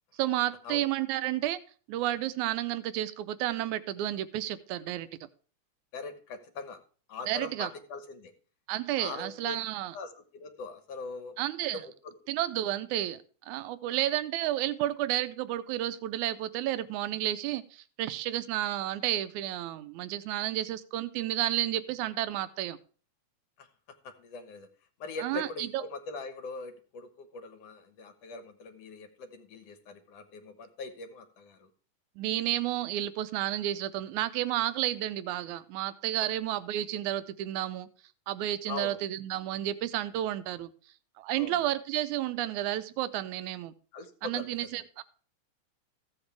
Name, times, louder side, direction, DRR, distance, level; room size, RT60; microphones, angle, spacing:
voice 1, 0.2-1.6 1.9-5.1 7.3-7.7 8.7-10.0 11.4-11.8 12.3-22.8 25.2-25.8 32.2-37.9 38.3-40.7 41.2-43.7 44.2-45.0, right 13 dB, 90° right, 13 dB, 2.1 m, -31 dB
voice 2, 5.9-6.8 7.1-8.3 9.0-9.6 9.9-11.4 11.7-12.1 13.9-14.0 23.6-23.7 24.0-24.7 25.0-31.7 38.7-39.0 41.3-41.6 43.9-44.5, left 3 dB, 65° left, 7 dB, 2.1 m, -41 dB
15.0 x 7.9 x 3.4 m, 0.40 s
omnidirectional pair, 3.4 m